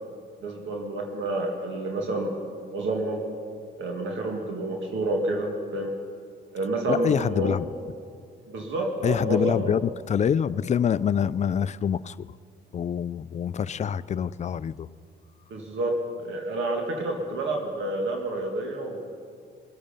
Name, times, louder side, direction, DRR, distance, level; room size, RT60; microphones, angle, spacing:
voice 1, 0.4-2.4 2.7-3.3 3.8-5.9 6.5-7.6 8.5-9.7 15.5-19.0, right 2 dB, 75° right, 2 dB, 1.8 m, -29 dB
voice 2, 6.9-7.7 9.0-12.3 12.7-14.9, left 8 dB, 35° left, 17 dB, 0.4 m, -26 dB
22.5 x 8.9 x 5.6 m, 2.3 s
cardioid pair, 90°, 20 cm